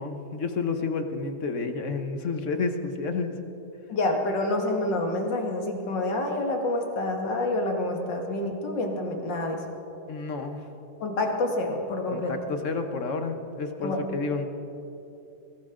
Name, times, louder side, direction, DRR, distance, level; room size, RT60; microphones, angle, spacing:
voice 1, 0.0-3.4 10.1-10.7 12.1-14.4, left 4 dB, 50° left, 7 dB, 1.2 m, -30 dB
voice 2, 3.9-9.6 11.0-12.3 13.8-14.0, left 2 dB, 80° left, 2 dB, 2.4 m, -28 dB
22.0 x 17.0 x 3.8 m, 2.9 s
omnidirectional pair, 1.9 m